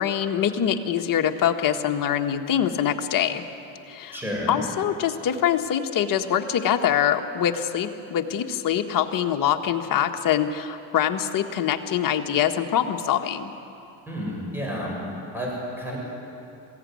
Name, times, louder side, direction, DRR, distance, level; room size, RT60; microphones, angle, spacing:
voice 1, 0.0-3.4 3.9-4.2 4.5-13.5, left 9 dB, 45° left, 5 dB, 1.6 m, -24 dB
voice 2, 4.1-4.6 14.0-15.0 15.3-16.0, equal, 5° right, -3 dB, 7.6 m, -30 dB
21.5 x 15.5 x 9.6 m, 2.8 s
supercardioid pair, 100°, 44 cm